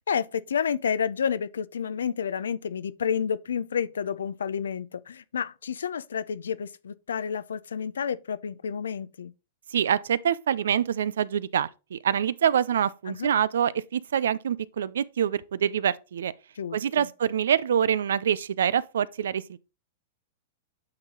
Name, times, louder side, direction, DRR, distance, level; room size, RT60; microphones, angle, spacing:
voice 1, 0.1-9.3 13.1-13.3 16.6-17.1, left 7 dB, 85° left, 0.5 m, -30 dB
voice 2, 9.7-16.3 16.7-19.6, right 8 dB, 80° right, 0.4 m, -25 dB
8.7 x 4.0 x 3.7 m
hypercardioid pair, 120°, 0 cm